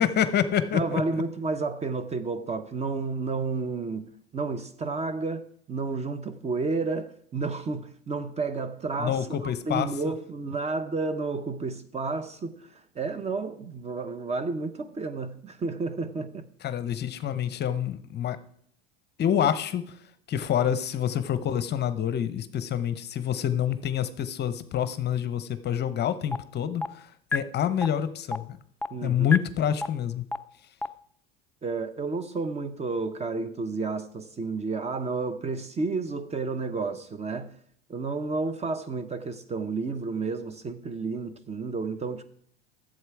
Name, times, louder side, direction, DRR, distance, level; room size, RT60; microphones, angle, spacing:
voice 1, 0.0-1.2 9.0-10.1 16.6-18.4 19.2-20.0 20.3-28.6 29.0-30.2, left 9 dB, 35° left, 0.8 m, -27 dB
voice 2, 0.7-4.1 4.3-16.5 28.9-29.3 31.6-37.5 37.9-42.2, right 3 dB, 20° right, 0.7 m, -31 dB
sound 1, 26.3-26.4 26.8-26.9 27.3-27.4 27.8-27.9 28.3-28.4 28.8-28.9 29.3-29.4 29.8-29.9 30.3-30.4 30.8-30.9, left 3 dB, 5° left, 0.3 m, -26 dB
11.0 x 7.7 x 4.7 m
hypercardioid pair, 95°, 30 cm